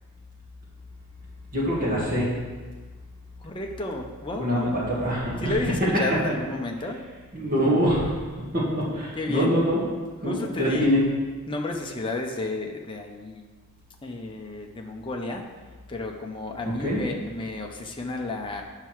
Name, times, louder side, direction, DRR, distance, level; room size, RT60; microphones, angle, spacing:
voice 1, 1.5-2.4 4.4-5.5 7.3-8.2 8.5-9.8 10.2-11.0 16.8-17.0, equal, 40° right, -7 dB, 2.4 m, -24 dB
voice 2, 3.4-4.7 5.4-7.0 9.1-9.5 10.2-10.9 11.5-13.4 14.0-15.5 15.9-18.6, left 2 dB, 20° left, 1 dB, 0.7 m, -31 dB
9.0 x 5.7 x 4.7 m, 1.4 s
head